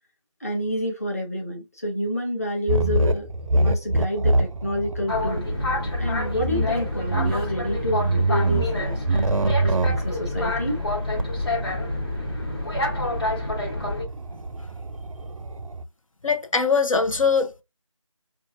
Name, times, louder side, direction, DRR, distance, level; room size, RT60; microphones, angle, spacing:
voice 1, 0.4-3.3 3.5-5.4 6.0-10.8, equal, 30° left, 0.7 m, -29 dB
sound 1, 2.7-15.8, right 2 dB, 85° right, 0.5 m, -26 dB
Boat Water vehicle, 5.1-14.0, left 2 dB, 50° left, 1.1 m, -28 dB
voice 2, 16.2-17.6, left 5 dB, 75° left, 0.7 m, -21 dB
4.6 x 2.4 x 2.4 m
figure-of-eight pair, 175°, 17 cm